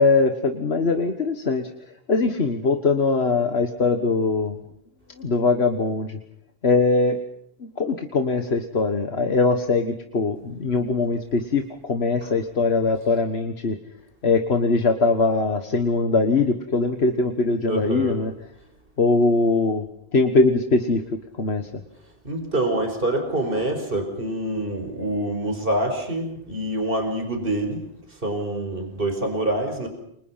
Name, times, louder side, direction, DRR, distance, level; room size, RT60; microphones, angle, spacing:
voice 1, 0.0-4.6 5.2-6.2 6.6-7.2 7.6-13.8 14.2-18.3 19.0-19.9 20.1-21.0 21.3-21.7, left 3 dB, 80° left, 7 dB, 1.8 m, -21 dB
voice 2, 17.7-18.2 22.2-27.8 28.2-29.9, right 1 dB, 60° right, 5 dB, 5.2 m, -26 dB
29.0 x 25.5 x 5.8 m, 0.73 s
omnidirectional pair, 1.0 m